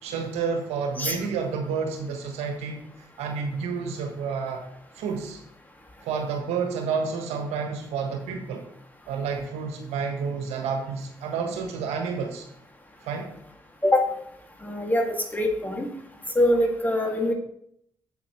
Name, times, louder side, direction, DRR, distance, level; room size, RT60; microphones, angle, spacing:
voice 1, 0.0-2.8 3.2-4.6 4.9-5.4 6.0-8.6 9.1-12.4 13.0-13.3, right 5 dB, 75° right, 4 dB, 1.3 m, -30 dB
voice 2, 14.6-15.1 15.3-15.9 16.3-17.3, left 1 dB, 15° left, 2 dB, 2.4 m, -23 dB
8.6 x 7.8 x 3.2 m, 0.71 s
hypercardioid pair, 50°, 11 cm